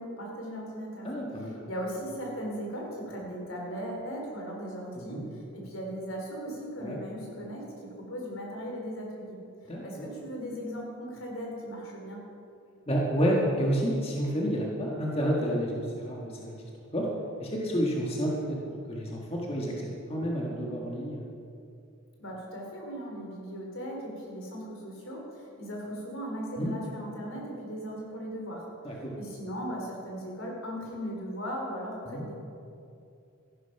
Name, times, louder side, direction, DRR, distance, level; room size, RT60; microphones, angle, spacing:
voice 1, 0.0-1.1 1.4-9.4 9.6-12.2 22.2-28.7 28.9-32.4, equal, 75° left, -1 dB, 3.7 m, -38 dB
voice 2, 1.0-1.7 5.0-5.2 6.8-7.0 9.7-10.1 12.9-16.6 16.9-17.1 17.4-18.6 18.9-21.2 26.6-26.7 28.8-29.1 32.0-32.2, equal, 30° left, -2 dB, 1.6 m, -30 dB
14.0 x 11.5 x 5.9 m, 2.5 s
head